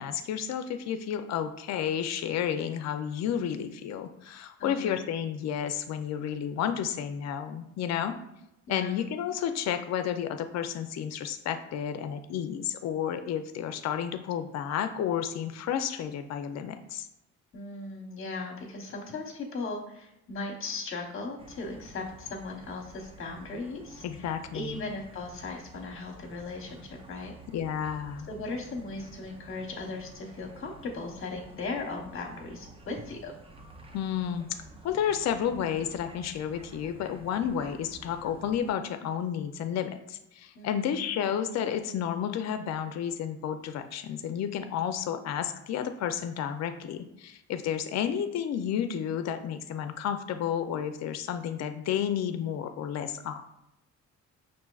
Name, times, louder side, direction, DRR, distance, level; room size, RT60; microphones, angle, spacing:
voice 1, 0.0-8.2 8.7-17.1 24.0-24.8 27.5-28.3 33.9-34.5 34.8-53.5, left 9 dB, 60° left, 8 dB, 0.5 m, -31 dB
voice 2, 4.6-5.0 8.7-9.0 17.5-27.3 28.3-33.3 40.5-40.9, left 3 dB, 45° left, 1 dB, 0.9 m, -38 dB
sound 1, 21.4-38.7, right 2 dB, 20° right, 0.5 m, -50 dB
5.5 x 2.6 x 2.3 m, 0.84 s
cardioid pair, 90°, 30 cm